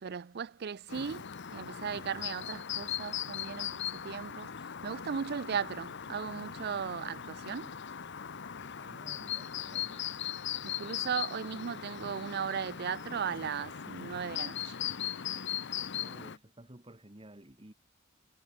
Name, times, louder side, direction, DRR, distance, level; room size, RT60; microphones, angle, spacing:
voice 1, 0.0-1.2 1.5-7.7 10.6-14.8, right 7 dB, 50° right, 0.5 m, -37 dB
Chirp tweet, 0.9-16.4, left 9 dB, 55° left, 0.9 m, -39 dB
voice 2, 8.8-10.1 16.0-17.7, right 1 dB, 25° right, 1.9 m, -53 dB
head